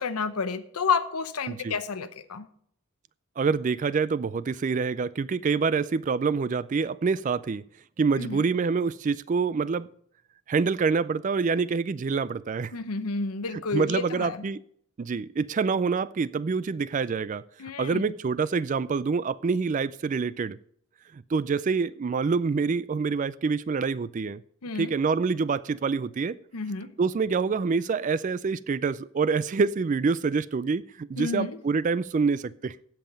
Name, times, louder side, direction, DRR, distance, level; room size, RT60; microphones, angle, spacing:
voice 1, 0.0-2.5 8.2-8.5 12.7-14.4 17.6-18.1 24.6-24.9 26.5-26.9 31.2-31.6, left 4 dB, 85° left, 0.8 m, -30 dB
voice 2, 3.4-7.6 8.0-9.9 10.5-12.7 13.5-14.6 15.0-17.4 17.8-20.6 21.1-24.4 24.8-26.4 27.0-32.8, right 5 dB, 35° right, 0.3 m, -26 dB
16.0 x 5.7 x 5.3 m
head